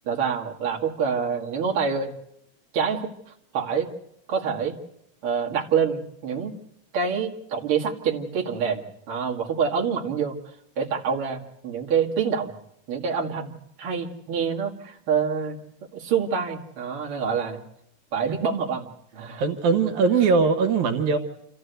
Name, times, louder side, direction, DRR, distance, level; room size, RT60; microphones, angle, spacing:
voice 1, 0.1-2.1 2.7-3.1 3.5-3.9 4.3-4.7 5.2-6.6 6.9-10.4 10.8-12.5 12.9-13.5 13.8-15.6 15.9-17.6 18.1-19.4, right 6 dB, 50° right, -1 dB, 2.7 m, -26 dB
voice 2, 19.4-21.2, right 5 dB, 80° right, 5 dB, 2.8 m, -20 dB
27.0 x 14.5 x 8.1 m, 0.77 s
omnidirectional pair, 3.4 m